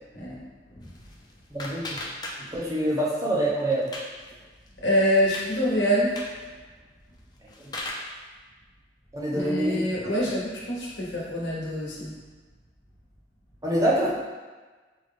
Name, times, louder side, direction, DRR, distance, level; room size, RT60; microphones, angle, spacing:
voice 1, 0.1-0.9 4.8-6.3 9.3-12.1, equal, 80° left, -5 dB, 1.1 m, -26 dB
sound 1, 0.8-2.8 3.1-4.2 4.6-4.7 5.1-5.5 6.0-6.4 7.2-8.1, left 2 dB, 25° left, 0.5 m, -37 dB
voice 2, 1.5-2.0 2.4-3.9 7.6-7.7 9.1-9.8 13.6-14.2, right 1 dB, 20° right, -5 dB, 0.7 m, -25 dB
5.3 x 2.2 x 3.5 m, 1.3 s
head